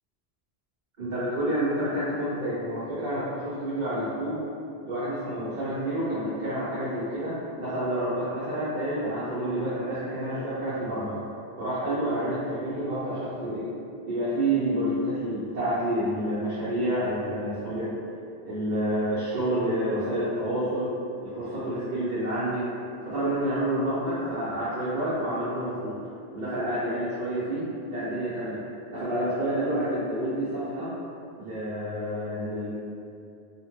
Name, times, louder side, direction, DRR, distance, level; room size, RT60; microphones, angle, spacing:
voice 1, 1.0-4.4 4.8-11.2 11.6-13.7 14.1-17.9 18.5-20.9 21.2-22.7 23.0-26.0 26.3-28.6 28.9-30.9 31.3-32.7, right 1 dB, 50° right, -12 dB, 0.7 m, -29 dB
2.8 x 2.1 x 2.9 m, 2.6 s
omnidirectional pair, 1.1 m